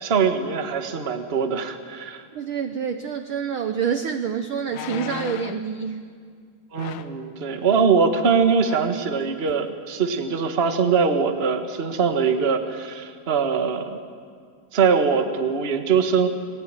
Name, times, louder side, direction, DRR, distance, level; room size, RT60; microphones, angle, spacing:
voice 1, 0.0-2.2 6.7-14.0 14.7-16.3, right 5 dB, 30° right, 6 dB, 1.2 m, -22 dB
voice 2, 2.3-6.0, right 7 dB, 65° right, 8 dB, 1.3 m, -27 dB
sound 1, 3.6-3.7 4.7-5.7 6.7-7.2 8.2-8.3 8.6-9.0 9.5-9.6, left 10 dB, 75° left, 2.2 m, -36 dB
29.5 x 20.5 x 9.0 m, 2.1 s
omnidirectional pair, 3.4 m